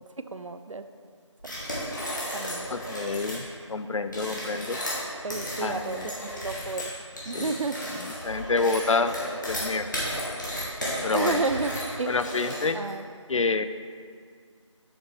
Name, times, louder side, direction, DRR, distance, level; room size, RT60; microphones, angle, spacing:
voice 1, 0.3-0.8 1.4-1.5 2.3-2.7 5.2-6.9 7.3-7.8 11.1-12.1 12.7-13.1, right 3 dB, 85° right, 10 dB, 0.4 m, -31 dB
sound 1, 1.4-3.4 4.0-12.9, equal, 40° left, 1.4 m, -33 dB
voice 2, 2.7-4.8 5.6-6.1 7.3-7.4 8.2-9.1 9.5-9.9 11.0-11.4 12.1-12.8 13.3-13.7, left 4 dB, 80° left, 11 dB, 0.4 m, -27 dB
7.2 x 5.0 x 3.3 m, 2.1 s
figure-of-eight pair, 175°, 16 cm